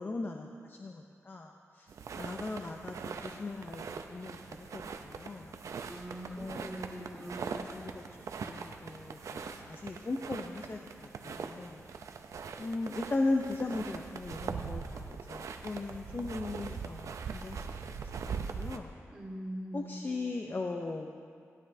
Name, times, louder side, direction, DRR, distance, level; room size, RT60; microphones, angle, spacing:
voice 1, 0.0-1.9 2.1-3.8 4.1-5.6 6.4-7.3 7.7-8.0 8.4-11.8 12.6-17.6 18.3-18.9 19.7-21.1, left 2 dB, 40° left, 2 dB, 0.6 m, -38 dB
sound 1, 1.9-18.8, right 5 dB, 80° right, 0.6 m, -42 dB
voice 2, 5.8-7.7 19.1-20.0, right 1 dB, 15° right, -7 dB, 1.8 m, -42 dB
17.0 x 9.7 x 2.7 m, 2.3 s
cardioid pair, 80°, 5 cm